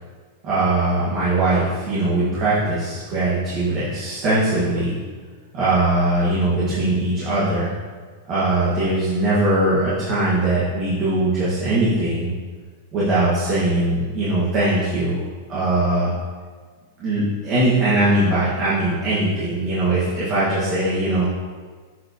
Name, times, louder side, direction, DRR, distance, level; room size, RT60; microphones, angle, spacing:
voice 1, 0.4-4.9 5.5-7.7 8.3-12.3 12.9-15.2 15.5-16.1 17.0-21.2, right 2 dB, 30° right, -11 dB, 1.9 m, -20 dB
7.6 x 5.9 x 3.1 m, 1.5 s
supercardioid pair, 170°, 0 cm